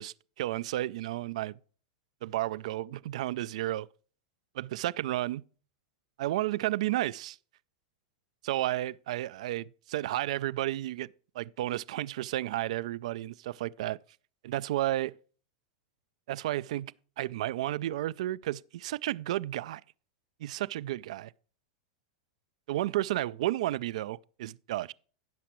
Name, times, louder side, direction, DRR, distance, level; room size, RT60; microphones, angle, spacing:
voice 1, 0.0-1.6 2.2-3.9 4.6-5.4 6.2-7.4 8.4-11.1 11.4-14.0 14.4-15.2 16.3-19.8 20.4-21.3 22.7-24.9, right 15 dB, 70° right, 0.3 m, -32 dB
16.0 x 5.9 x 3.0 m
hypercardioid pair, 130°, 4 cm